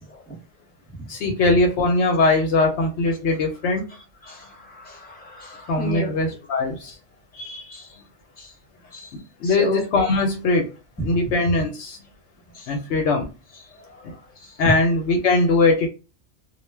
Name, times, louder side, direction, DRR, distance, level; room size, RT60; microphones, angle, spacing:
voice 1, 1.1-3.8 5.7-7.0 9.1-10.7 11.0-12.0 12.7-13.3 14.6-15.9, left 2 dB, 65° left, 0.8 m, -21 dB
voice 2, 4.2-6.1 7.3-7.9 8.4-8.5 8.9-9.1 9.4-9.8 12.5-12.7 13.9-14.2 14.4-14.5, left 1 dB, 10° left, 0.7 m, -34 dB
2.4 x 2.2 x 3.2 m
omnidirectional pair, 1.3 m